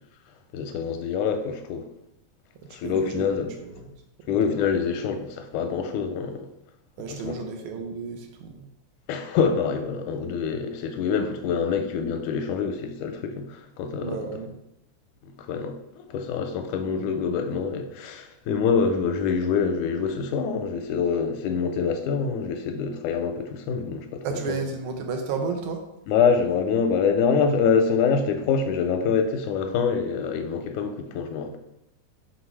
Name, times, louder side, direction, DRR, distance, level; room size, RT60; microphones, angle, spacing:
voice 1, 0.5-1.9 2.7-3.5 4.3-6.5 7.1-7.3 9.1-14.2 15.4-24.6 26.1-31.6, left 6 dB, 90° left, 2.1 m, -25 dB
voice 2, 2.6-3.9 4.2-4.6 7.0-8.7 14.0-14.6 24.2-25.8, right 5 dB, 80° right, 2.2 m, -33 dB
5.4 x 4.2 x 4.6 m
omnidirectional pair, 3.5 m